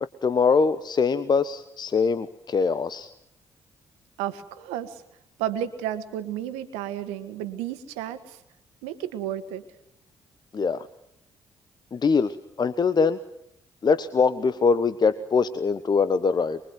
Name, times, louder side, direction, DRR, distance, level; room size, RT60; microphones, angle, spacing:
voice 1, 0.0-3.1 10.5-10.9 11.9-13.2 13.8-16.6, left 5 dB, 40° left, 13 dB, 1.2 m, -23 dB
voice 2, 4.2-5.0 5.4-8.4 8.8-9.6, right 11 dB, 70° right, 11 dB, 1.7 m, -32 dB
24.0 x 23.0 x 9.5 m, 0.76 s
figure-of-eight pair, 40°, 11 cm